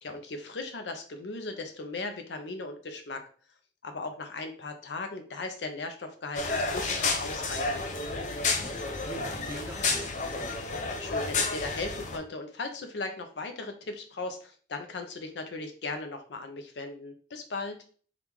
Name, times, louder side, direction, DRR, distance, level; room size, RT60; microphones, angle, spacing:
voice 1, 0.0-3.2 3.8-7.8 11.0-17.8, left 3 dB, 85° left, 6 dB, 0.6 m, -37 dB
sound 1, 6.4-12.2, left 3 dB, 45° left, 0.4 m, -31 dB
voice 2, 8.3-10.6, right 1 dB, 15° right, 1 dB, 0.5 m, -44 dB
2.9 x 2.4 x 3.5 m, 0.43 s
head